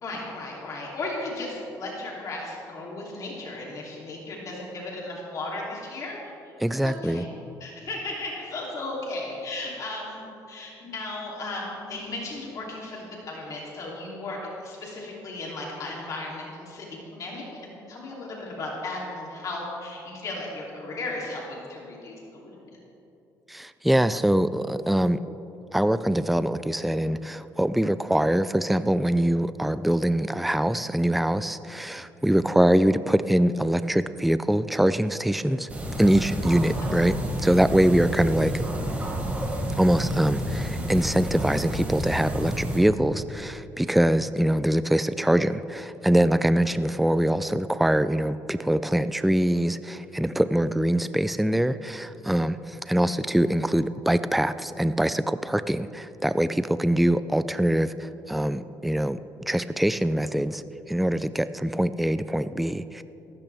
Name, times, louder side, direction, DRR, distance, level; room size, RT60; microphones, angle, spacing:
voice 1, 0.0-6.1 6.8-7.3 7.6-22.5, left 2 dB, 50° left, -3 dB, 3.0 m, -35 dB
voice 2, 6.6-7.3 23.5-25.2 25.7-35.7 36.0-38.6 39.8-59.2 59.5-60.6 60.9-63.0, right 1 dB, ahead, 13 dB, 0.3 m, -23 dB
sound 1, 35.7-42.8, equal, 20° right, 2.7 m, -30 dB
18.0 x 15.0 x 3.5 m, 2.9 s
cardioid pair, 115°, 7 cm